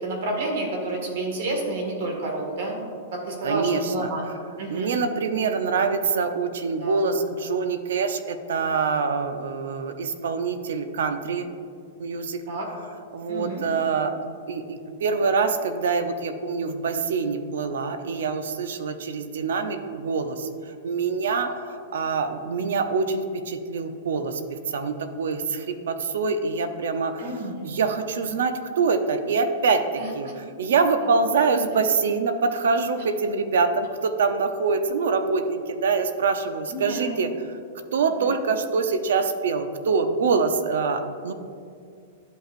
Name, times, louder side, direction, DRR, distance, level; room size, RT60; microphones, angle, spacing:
voice 1, 0.0-2.8 3.1-4.3 4.6-4.9 6.8-7.1 12.5-12.7 13.3-13.6 21.3-21.5 27.2-27.7 30.0-30.3 36.7-37.2 38.2-38.4, right 2 dB, 65° right, 1 dB, 1.8 m, -30 dB
voice 2, 3.4-4.1 4.7-11.5 12.0-12.4 13.1-14.1 14.5-29.8 30.1-37.6 37.9-41.3, right 4 dB, 85° right, 8 dB, 0.6 m, -25 dB
12.0 x 5.3 x 2.5 m, 2.4 s
supercardioid pair, 160°, 0 cm